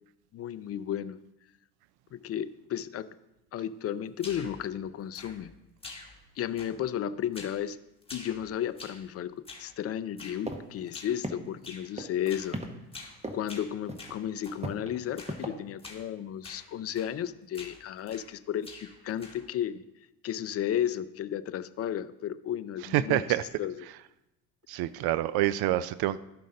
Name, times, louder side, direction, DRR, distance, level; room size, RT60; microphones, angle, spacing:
voice 1, 0.3-1.2 2.1-3.1 3.5-5.5 6.4-7.8 8.1-12.6 13.3-19.8 20.2-23.9, left 10 dB, 35° left, 14 dB, 0.5 m, -33 dB
sound 1, 4.2-4.6 5.1-5.6 5.8-6.3 6.6-7.0 7.3-7.6 8.0-9.1 9.5-9.7 10.2-10.4 10.9-11.2 11.6-11.9 12.3-12.5 12.9-13.2 13.5-14.6 15.2-15.4 15.8-16.1 16.4-16.7 17.0-17.2 17.5-18.4 18.6-19.5, left 3 dB, 10° left, 1.9 m, -47 dB
sound 2, 10.5-10.6 10.9-11.0 11.2-11.7 12.0-12.7 13.2-13.6 13.9-14.1 14.6-15.5, right 1 dB, 15° right, 1.1 m, -35 dB
voice 2, 22.9-23.4 24.7-26.2, right 14 dB, 55° right, 16 dB, 0.5 m, -27 dB
12.5 x 5.1 x 3.8 m, 0.92 s
hypercardioid pair, 70°, 45 cm